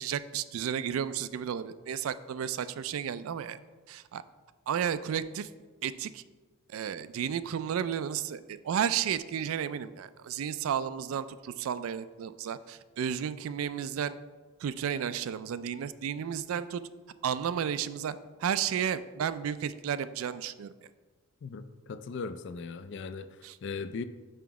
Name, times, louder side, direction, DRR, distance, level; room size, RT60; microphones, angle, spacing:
voice 1, 0.0-3.6 3.9-4.2 4.7-5.5 5.8-6.2 6.7-14.2 14.6-16.8 17.2-20.7 23.4-23.6, right 8 dB, 75° right, 14 dB, 0.3 m, -32 dB
voice 2, 21.4-23.3 23.6-24.0, left 4 dB, 55° left, 12 dB, 0.4 m, -38 dB
5.7 x 5.0 x 4.7 m, 1.3 s
head